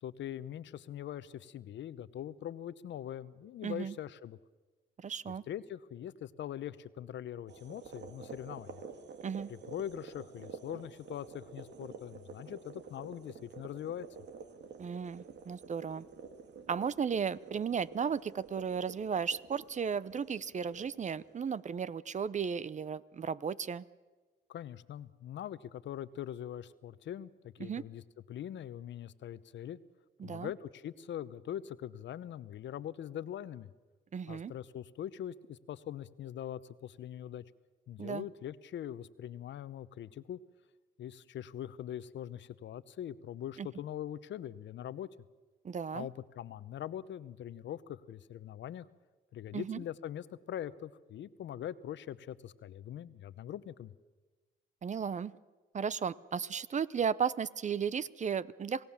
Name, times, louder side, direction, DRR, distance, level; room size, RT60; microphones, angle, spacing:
voice 1, 0.0-4.4 5.3-8.8 9.5-14.1 24.5-28.0 28.3-29.8 30.2-33.7 34.3-37.4 37.9-40.4 41.0-45.1 45.9-48.9 49.3-53.9, left 10 dB, 65° left, 15 dB, 0.8 m, -42 dB
voice 2, 3.6-3.9 5.0-5.4 9.2-9.5 14.8-16.0 16.7-23.8 27.6-27.8 30.2-30.5 34.1-34.5 38.0-38.2 43.6-43.7 45.6-46.1 49.5-49.8 54.8-55.3 55.7-58.8, right 7 dB, 35° right, 19 dB, 0.6 m, -35 dB
sound 1, 7.5-21.7, right 5 dB, 60° right, 2.1 m, -50 dB
27.5 x 17.5 x 7.3 m, 1.3 s
cardioid pair, 90°, 20 cm